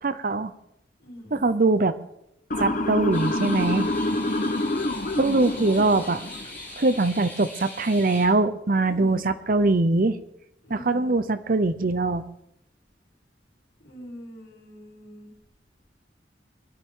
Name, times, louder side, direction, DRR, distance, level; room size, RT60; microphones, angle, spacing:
voice 1, 0.0-0.5 1.3-1.9 2.6-3.9 5.2-6.2 6.8-10.2 10.7-12.2, right 2 dB, 50° right, 13 dB, 0.7 m, -22 dB
voice 2, 1.0-1.4 4.1-4.5 8.8-9.3 10.6-11.1 13.8-15.3, equal, 70° left, -2 dB, 4.6 m, -43 dB
Motor vehicle (road) / Siren, 2.5-6.6, left 1 dB, 45° left, 1.0 m, -27 dB
sound 1, 3.1-8.2, left 1 dB, 10° left, 4.9 m, -41 dB
21.0 x 12.0 x 3.8 m, 0.80 s
head